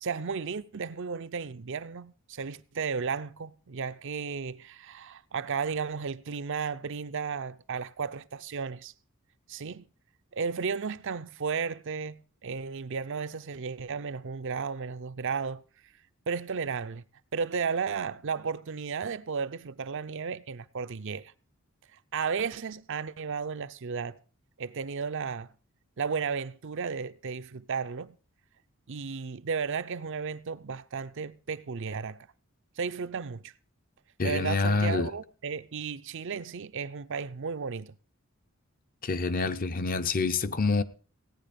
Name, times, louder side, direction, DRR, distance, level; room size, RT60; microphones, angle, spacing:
voice 1, 0.0-8.9 9.5-9.8 10.3-15.6 16.3-17.0 17.3-21.3 22.1-24.2 24.6-25.5 26.0-28.2 28.9-32.2 32.8-33.5 34.2-37.9, right 5 dB, 60° right, 0.6 m, -34 dB
voice 2, 34.2-35.1 39.0-40.8, left 3 dB, 40° left, 0.7 m, -27 dB
17.0 x 9.5 x 5.2 m
head